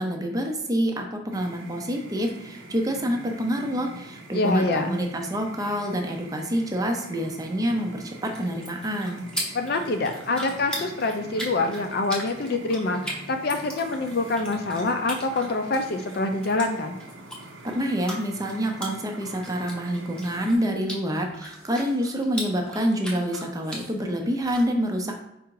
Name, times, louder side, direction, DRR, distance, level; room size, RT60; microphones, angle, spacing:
voice 1, 0.0-9.2 17.6-25.2, equal, 15° right, 3 dB, 0.5 m, -27 dB
sound 1, 1.3-20.6, right 1 dB, 75° right, 0.8 m, -44 dB
voice 2, 4.3-5.0 9.5-17.0, left 2 dB, 50° left, 6 dB, 0.4 m, -26 dB
sound 2, 8.0-24.6, equal, 5° left, 0.8 m, -39 dB
4.6 x 2.5 x 4.6 m, 0.87 s
head